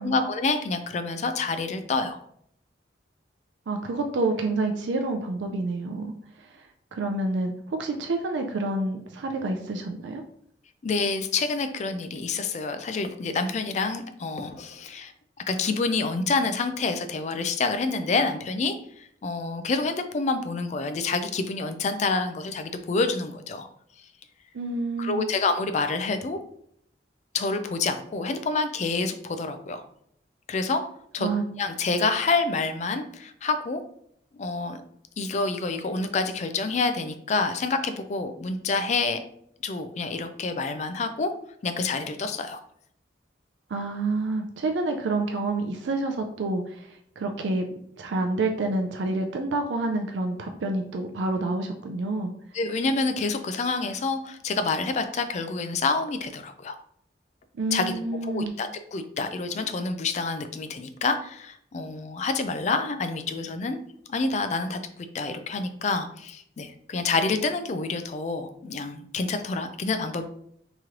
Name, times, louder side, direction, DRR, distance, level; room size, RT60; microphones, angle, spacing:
voice 1, 0.0-2.2 10.8-15.1 15.5-23.7 25.0-26.4 27.3-29.8 30.5-30.9 31.1-31.3 31.6-33.8 34.3-34.8 35.2-39.2 39.6-41.3 41.6-42.6 52.5-56.8 57.7-57.9 58.2-63.8 64.1-64.8 65.1-70.3, left 3 dB, 40° left, 9 dB, 0.4 m, -28 dB
voice 2, 3.7-6.1 6.4-6.6 6.9-10.2 24.5-25.3 31.2-31.4 43.7-47.7 48.0-52.3 57.6-58.5, right 2 dB, 90° right, 4 dB, 0.4 m, -28 dB
3.0 x 3.0 x 3.7 m, 0.67 s
head